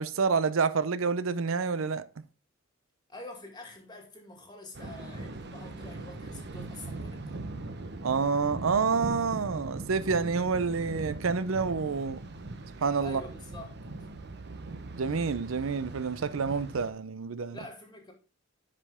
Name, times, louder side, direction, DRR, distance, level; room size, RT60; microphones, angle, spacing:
voice 1, 0.0-2.0 8.0-12.2 12.8-13.2 14.9-17.6, right 5 dB, 80° right, 0.6 m, -28 dB
voice 2, 3.1-7.4 13.0-13.8 17.5-18.1, left 2 dB, 20° left, 2.2 m, -46 dB
Thunder, 4.7-16.9, right 2 dB, 55° right, 1.0 m, -40 dB
9.8 x 5.2 x 3.6 m
head